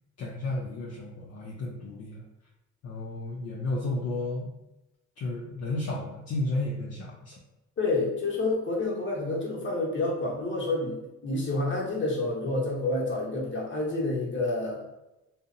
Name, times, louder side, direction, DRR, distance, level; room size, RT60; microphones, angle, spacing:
voice 1, 0.2-2.2 2.8-4.5 5.2-7.3, left 2 dB, 60° left, -2 dB, 0.5 m, -32 dB
voice 2, 7.8-14.8, left 2 dB, 40° left, -3 dB, 0.9 m, -29 dB
2.6 x 2.0 x 2.5 m, 0.96 s
cardioid pair, 90°, 30 cm